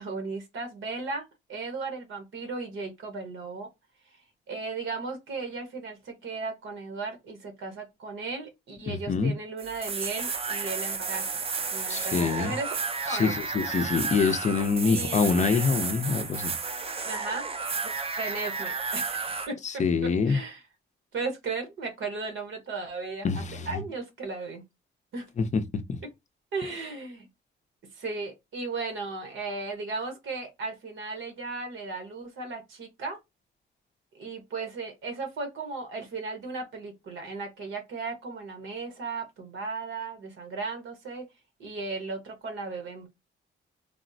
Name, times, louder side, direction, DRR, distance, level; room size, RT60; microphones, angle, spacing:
voice 1, 0.0-3.7 4.5-11.4 11.7-12.7 13.0-13.4 14.9-15.4 17.0-17.5 17.8-19.6 20.3-20.6 21.1-24.6 25.1-25.3 26.5-27.3 27.9-33.2 34.1-41.3 41.6-43.1, right 3 dB, 80° right, 1.0 m, -36 dB
voice 2, 8.9-9.4 11.9-12.6 13.1-16.5 19.6-20.4 23.2-23.8 25.4-25.6 25.9-26.0, left 5 dB, 35° left, 0.5 m, -25 dB
sound 1, 9.6-19.5, right 4 dB, 30° right, 0.4 m, -32 dB
3.4 x 2.0 x 2.6 m
cardioid pair, 110°, 20 cm